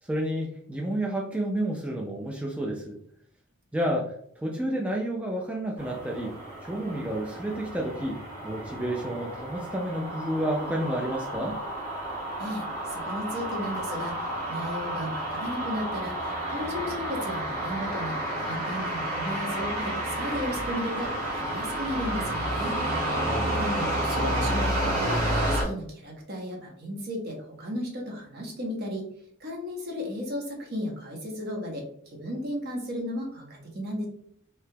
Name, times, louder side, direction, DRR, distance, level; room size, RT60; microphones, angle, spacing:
voice 1, 0.0-3.0 3.7-6.4 6.6-11.6 23.2-23.6, right 1 dB, 5° right, -2 dB, 0.3 m, -30 dB
sound 1, 5.8-25.6, right 1 dB, 80° right, 1.3 m, -31 dB
voice 2, 12.4-22.8 23.5-25.2 25.5-29.1 29.4-34.0, equal, 50° right, 0 dB, 0.8 m, -35 dB
3.3 x 2.8 x 2.2 m, 0.65 s
head